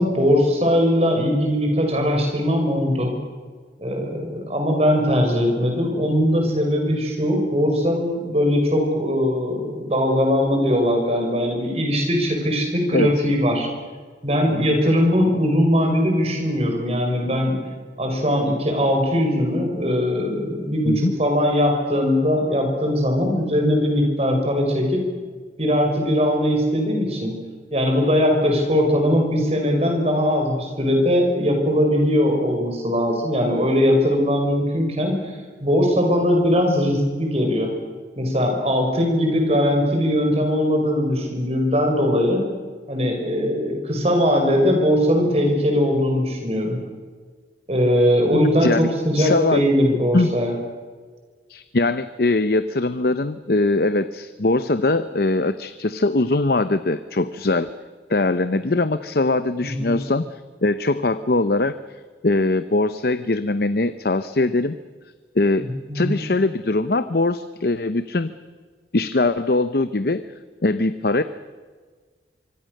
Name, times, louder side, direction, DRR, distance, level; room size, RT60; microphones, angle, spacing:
voice 1, 0.0-3.2 3.8-13.7 14.2-17.6 18.0-25.0 25.6-27.4 27.7-35.2 35.6-37.7 38.2-42.4 42.9-46.8 47.7-50.5 59.6-60.0 65.6-66.2, equal, 35° right, 2 dB, 5.8 m, -20 dB
voice 2, 49.2-49.6 50.1-50.3 51.5-57.7 58.1-61.8 62.2-64.8 65.3-65.7 65.9-68.3 68.9-70.2 70.6-71.2, left 2 dB, 55° left, 12 dB, 0.8 m, -21 dB
25.0 x 25.0 x 6.6 m, 1.5 s
head